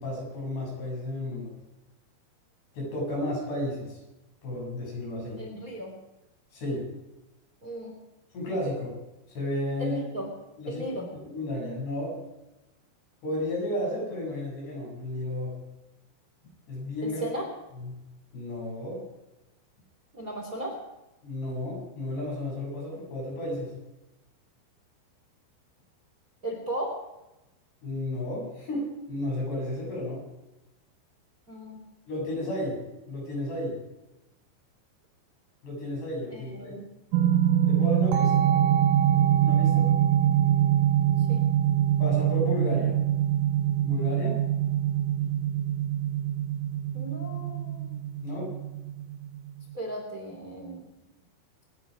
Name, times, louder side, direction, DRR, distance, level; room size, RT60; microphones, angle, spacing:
voice 1, 0.0-1.5 2.7-4.0 4.4-5.4 6.5-6.9 8.3-8.9 9.3-10.0 10.6-10.9 11.2-12.1 13.2-15.6 16.7-17.2 17.8-17.9 18.3-19.0 21.2-23.7 27.8-30.2 32.1-32.8 33.1-33.7 35.6-36.7 37.7-38.5 39.4-39.9 42.0-43.0 43.8-44.4 48.2-48.5, left 1 dB, 70° left, -3 dB, 9.6 m, -32 dB
voice 2, 5.4-5.9 7.6-7.9 9.8-10.3 10.7-11.1 17.0-17.4 20.1-20.7 26.4-27.0 31.5-31.8 36.3-36.8 40.2-40.3 41.3-41.4 46.9-47.9 49.7-50.8, right 1 dB, 20° right, 0 dB, 3.1 m, -36 dB
sound 1, 37.1-49.7, right 11 dB, 75° right, 2.0 m, -24 dB
27.0 x 10.5 x 5.1 m, 0.97 s
omnidirectional pair, 5.0 m